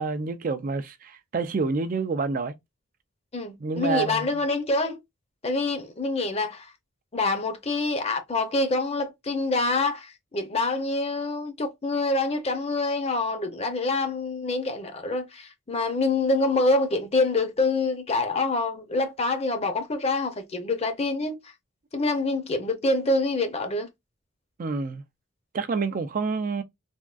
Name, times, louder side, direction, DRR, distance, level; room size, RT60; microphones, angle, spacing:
voice 1, 0.0-2.5 3.6-4.3 24.6-25.0 25.5-26.6, right 4 dB, 40° right, 0.4 m, -28 dB
voice 2, 3.3-5.0 5.4-6.7 7.1-21.4 21.9-23.9, left 2 dB, 30° left, 0.6 m, -26 dB
3.5 x 2.3 x 2.4 m
head